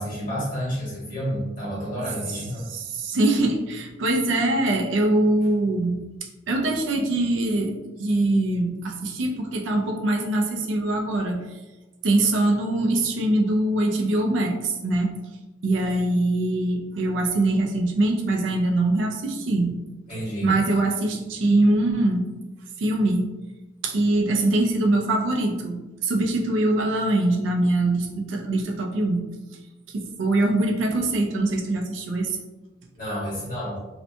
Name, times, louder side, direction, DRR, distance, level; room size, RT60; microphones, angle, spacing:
voice 1, 0.0-2.6 20.1-20.5 33.0-33.8, equal, 45° left, -6 dB, 1.3 m, -30 dB
voice 2, 2.7-6.0 6.5-7.7 8.0-11.4 12.0-15.1 15.6-19.8 20.4-22.3 22.8-23.2 23.8-29.2 29.9-32.4, right 2 dB, 75° right, 2 dB, 0.4 m, -23 dB
2.6 x 2.2 x 2.6 m, 1.1 s
head